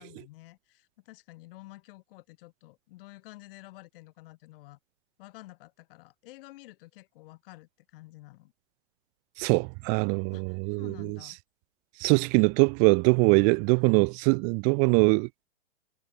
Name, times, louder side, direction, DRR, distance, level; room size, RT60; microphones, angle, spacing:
voice 1, 0.0-4.8 5.2-8.5 10.3-11.4, left 19 dB, 50° left, 4.7 m, -50 dB
voice 2, 9.4-11.2 12.0-15.4, right 40 dB or more, 25° right, 0.4 m, -23 dB
hypercardioid pair, 115°, 36 cm